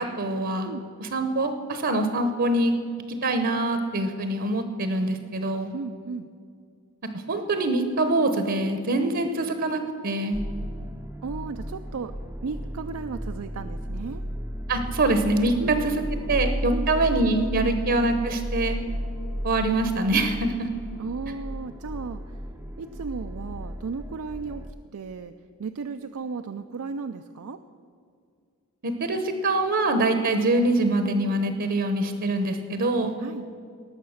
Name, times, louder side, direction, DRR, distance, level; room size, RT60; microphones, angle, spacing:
voice 1, 0.0-0.7 1.0-2.7 3.1-5.7 7.1-10.4 14.7-15.5 15.8-15.9 16.3-18.8 19.4-20.7 28.8-33.2, right 2 dB, 55° right, 7 dB, 0.8 m, -24 dB
voice 2, 5.7-6.3 11.2-12.1 12.4-14.2 15.4-15.8 16.2-17.0 17.5-17.8 21.0-22.2 22.8-24.7 24.9-25.3 25.6-27.6 33.2-33.5, right 4 dB, 70° right, 8 dB, 0.4 m, -35 dB
sound 1, 10.3-24.7, equal, 10° right, 0.5 m, -34 dB
18.5 x 6.7 x 6.4 m, 2.3 s
head